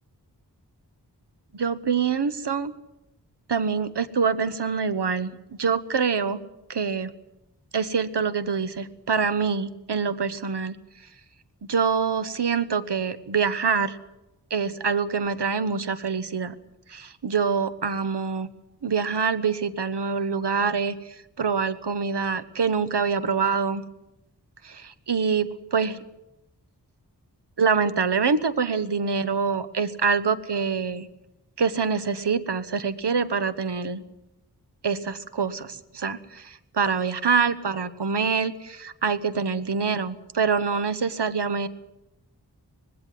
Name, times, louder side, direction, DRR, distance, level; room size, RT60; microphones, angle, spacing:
voice 1, 1.5-2.7 3.5-5.3 5.6-6.4 6.7-7.1 7.7-10.7 11.7-14.0 14.5-16.5 16.9-18.5 18.8-20.9 21.4-23.8 24.6-26.0 27.6-31.1 31.6-34.0 34.8-41.7, right 5 dB, 80° right, 13 dB, 1.1 m, -25 dB
19.5 x 16.5 x 9.4 m, 0.95 s
wide cardioid pair, 45°, 40 cm